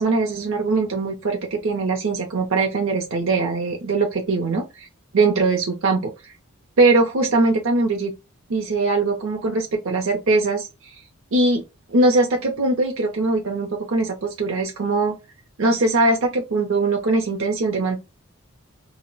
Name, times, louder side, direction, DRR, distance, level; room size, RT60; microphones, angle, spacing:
voice 1, 0.0-4.9 5.1-6.3 6.8-8.1 8.5-11.0 11.3-11.6 11.9-15.2 15.6-18.0, right 3 dB, 65° right, 0.5 m, -21 dB
2.2 x 2.0 x 3.7 m
head